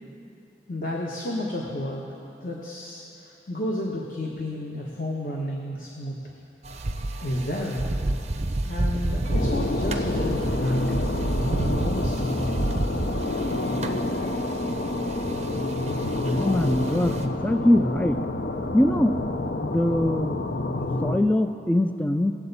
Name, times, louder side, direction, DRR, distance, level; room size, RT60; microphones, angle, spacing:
voice 1, 0.7-3.0 3.5-6.1 7.2-7.9 8.6-11.1 11.5-12.4, left 1 dB, 50° left, -2 dB, 1.0 m, -31 dB
sound 1, 6.6-17.3, right 2 dB, 40° right, 0.6 m, -30 dB
sound 2, 9.3-21.2, left 2 dB, 65° left, 0.6 m, -28 dB
voice 2, 16.2-18.2 18.7-19.1 19.6-20.5 21.0-22.3, left 1 dB, 10° left, 8 dB, 0.3 m, -22 dB
19.5 x 7.8 x 4.0 m, 2.8 s
head